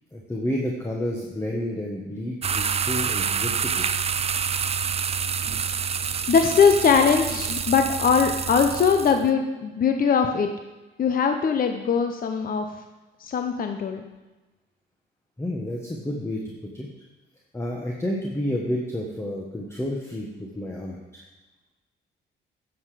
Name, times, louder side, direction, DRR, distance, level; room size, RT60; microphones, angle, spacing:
voice 1, 0.1-3.8 15.4-16.4 16.7-16.9 17.5-20.3 20.5-21.2, left 1 dB, 15° left, -1 dB, 1.4 m, -30 dB
sound 1, 2.4-9.2, right 6 dB, 30° right, 0.5 m, -27 dB
voice 2, 6.3-10.5 11.0-12.7 13.2-14.0, left 6 dB, 45° left, 5 dB, 0.8 m, -21 dB
9.5 x 7.3 x 5.0 m, 1.1 s
cardioid pair, 90°, 20 cm